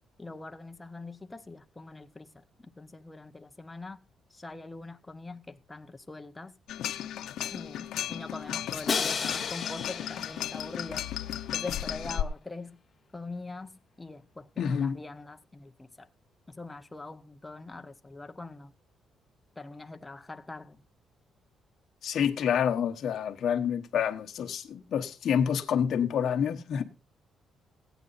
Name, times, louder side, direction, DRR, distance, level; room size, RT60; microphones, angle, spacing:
voice 1, 0.2-4.0 4.3-6.5 7.5-11.1 11.5-12.8 13.1-16.1 16.5-18.7 19.6-20.8, left 3 dB, 10° left, 0.6 m, -43 dB
sound 1, 6.7-12.2, left 11 dB, 75° left, 0.7 m, -35 dB
Crash cymbal, 8.9-10.9, left 6 dB, 30° left, 1.1 m, -33 dB
voice 2, 14.6-15.0 22.0-26.8, left 8 dB, 55° left, 1.1 m, -28 dB
15.5 x 9.1 x 4.0 m
cardioid pair, 155°, 0 cm